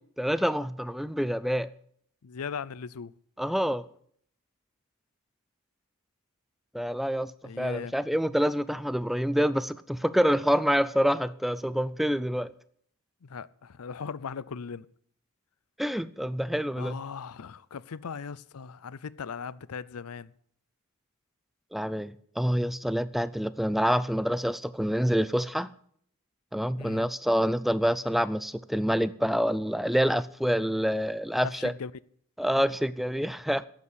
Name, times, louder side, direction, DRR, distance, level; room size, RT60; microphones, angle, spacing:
voice 1, 0.2-1.7 3.4-3.8 6.7-7.3 7.6-12.5 15.8-17.0 21.7-25.7 26.5-31.7 32.4-33.6, equal, ahead, 0.4 m, -27 dB
voice 2, 2.2-3.1 7.4-7.9 13.2-14.9 16.7-20.3 26.8-27.1 31.5-31.9, left 6 dB, 80° left, 0.5 m, -38 dB
11.0 x 8.3 x 8.4 m
head